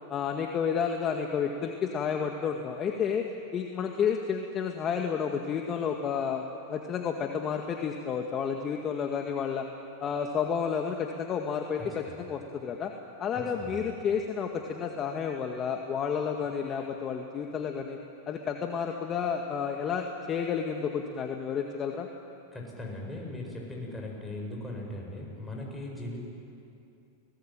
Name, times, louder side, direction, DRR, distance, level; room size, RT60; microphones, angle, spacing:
voice 1, 0.1-6.4 6.7-9.7 10.0-12.9 13.2-18.0 18.3-22.1, left 7 dB, 30° left, 3 dB, 1.9 m, -31 dB
voice 2, 13.3-13.8 22.5-26.2, left 1 dB, 10° left, -1 dB, 7.7 m, -39 dB
29.0 x 20.0 x 9.1 m, 2.7 s
hypercardioid pair, 120°, 0 cm